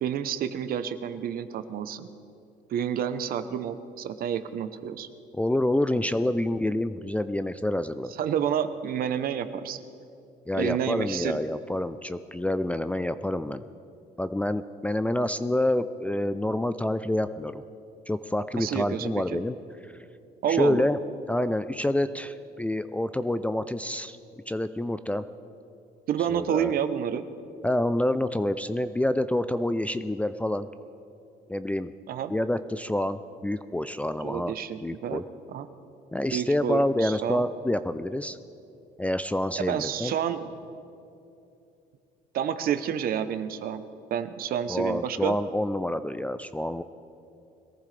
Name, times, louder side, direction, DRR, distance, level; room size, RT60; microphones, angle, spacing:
voice 1, 0.0-2.1 2.7-5.1 8.2-9.8 10.5-11.4 18.6-19.4 20.4-20.8 26.1-27.2 32.1-32.3 34.2-35.2 35.5-35.7 36.3-37.4 39.6-40.5 42.3-43.8 44.1-45.4, right 9 dB, 60° right, 11 dB, 0.8 m, -29 dB
voice 2, 5.3-8.1 10.5-13.6 14.2-17.6 18.1-19.6 20.5-21.0 21.3-24.2 24.5-25.3 26.3-26.7 27.6-30.7 31.5-31.9 32.3-34.5 34.8-35.2 36.1-38.4 39.0-40.1 44.7-46.8, left 1 dB, 10° left, 10 dB, 0.4 m, -27 dB
22.0 x 14.5 x 3.3 m, 2.7 s
cardioid pair, 110°, 17 cm